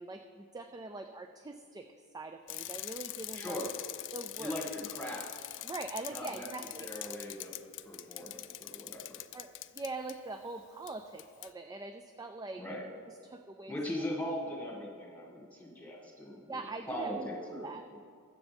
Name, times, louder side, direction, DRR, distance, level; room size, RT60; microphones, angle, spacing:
voice 1, 0.0-1.9 2.1-3.7 4.1-4.5 5.6-6.9 9.3-12.6 13.2-13.7 16.5-17.9, right 3 dB, 15° right, 6 dB, 0.4 m, -43 dB
Bicycle, 2.5-10.1 10.9-11.0 11.2-11.5, left 16 dB, 55° left, 0.4 m, -43 dB
voice 2, 3.3-3.7 4.4-5.3 6.1-6.5 6.8-7.5 7.9-9.0 12.6-12.8 13.7-17.8, equal, 5° left, -3 dB, 2.1 m, -39 dB
21.5 x 7.3 x 3.5 m, 2.1 s
head